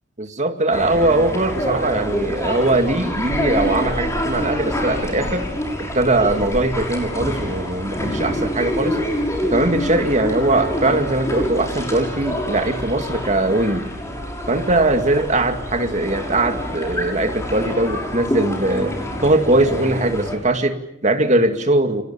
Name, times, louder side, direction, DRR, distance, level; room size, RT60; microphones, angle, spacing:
voice 1, 0.2-5.5 5.9-9.0 9.4-13.8 14.5-19.0 19.2-22.0, right 2 dB, 40° right, 6 dB, 2.3 m, -20 dB
sound 1, 0.7-20.4, equal, 15° left, 6.5 m, -26 dB
29.5 x 25.0 x 7.1 m, 0.81 s
head